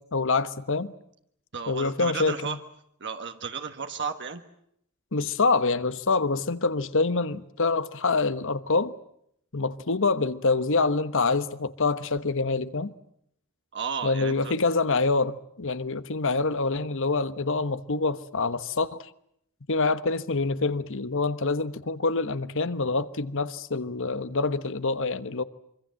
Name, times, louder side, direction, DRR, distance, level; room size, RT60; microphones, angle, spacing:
voice 1, 0.1-0.9 1.7-2.6 5.1-8.9 9.5-12.9 14.0-19.1 19.7-25.4, left 3 dB, 60° left, 1.2 m, -26 dB
voice 2, 1.5-2.6 3.0-4.4 13.7-14.5, right 5 dB, 55° right, 1.5 m, -33 dB
25.5 x 25.0 x 7.7 m
head